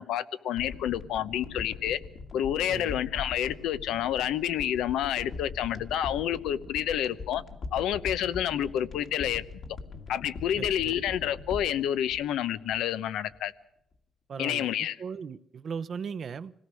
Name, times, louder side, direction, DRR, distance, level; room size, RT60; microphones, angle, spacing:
voice 1, 0.0-2.0 2.3-7.4 7.7-9.4 10.1-13.5 14.4-15.0, left 10 dB, 85° left, 0.8 m, -29 dB
sound 1, 0.6-13.0 13.3-13.4, left 4 dB, 60° left, 2.2 m, -42 dB
voice 2, 2.7-3.0 10.6-10.9 14.3-16.5, right 6 dB, 50° right, 0.8 m, -38 dB
26.0 x 17.5 x 6.3 m
cardioid pair, 90°, 0 cm